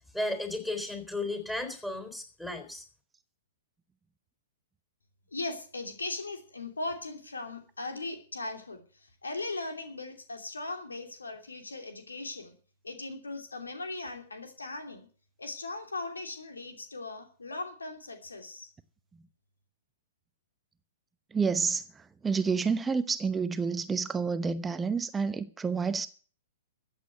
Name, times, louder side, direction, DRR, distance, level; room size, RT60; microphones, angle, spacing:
voice 1, 0.1-2.8, left 2 dB, 5° left, 3.8 m, -34 dB
voice 2, 5.3-12.5 12.8-15.1 15.4-18.7, left 2 dB, 85° left, 2.9 m, -38 dB
voice 3, 21.3-26.1, right 5 dB, 15° right, 0.8 m, -29 dB
14.5 x 8.3 x 7.9 m
figure-of-eight pair, 115°, 0 cm